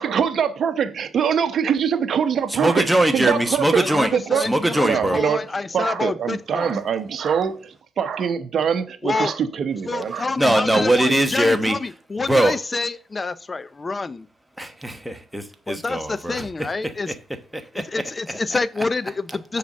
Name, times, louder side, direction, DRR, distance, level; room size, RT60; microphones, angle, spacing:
voice 1, 0.0-4.5 4.7-5.4 5.7-11.2, right 7 dB, 55° right, 1.0 m, -24 dB
voice 2, 2.6-5.2 10.4-11.8 12.3-12.6 14.6-16.5 17.1-17.2 17.5-17.9 18.3-18.4, right 1 dB, 5° right, 1.2 m, -21 dB
voice 3, 3.8-6.8 9.0-9.3 9.9-14.3 15.7-17.1 17.7-19.6, left 3 dB, 25° left, 0.5 m, -27 dB
6.8 x 4.0 x 6.6 m
cardioid pair, 90°, 0 cm